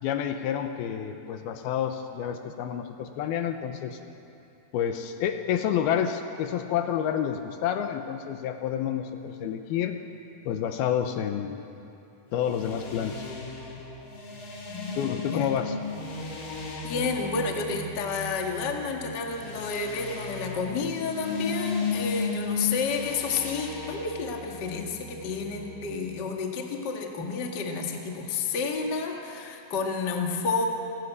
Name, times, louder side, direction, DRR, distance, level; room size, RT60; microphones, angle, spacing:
voice 1, 0.0-4.0 4.7-10.0 10.5-11.6 12.3-13.2 15.0-15.8, left 9 dB, 75° left, 7 dB, 2.5 m, -29 dB
sound 1, 12.3-26.0, left 4 dB, 40° left, 2.9 m, -35 dB
voice 2, 14.6-15.5 16.5-30.6, left 4 dB, 55° left, 1 dB, 1.1 m, -30 dB
27.5 x 13.5 x 8.3 m, 2.8 s
omnidirectional pair, 5.2 m